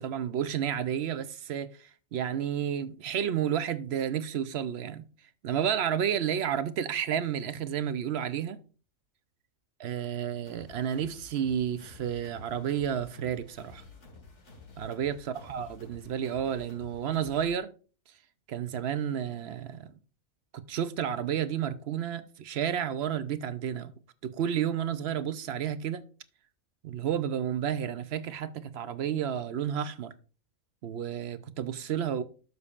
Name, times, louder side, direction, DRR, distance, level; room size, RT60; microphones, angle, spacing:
voice 1, 0.0-5.0 5.4-8.6 9.8-13.8 14.8-17.7 18.5-19.9 20.5-23.9 24.2-26.0 26.8-30.1 30.8-32.2, right 9 dB, 65° right, 0.7 m, -31 dB
sound 1, 10.5-17.6, left 3 dB, 60° left, 1.9 m, -52 dB
12.0 x 6.5 x 2.4 m
omnidirectional pair, 1.4 m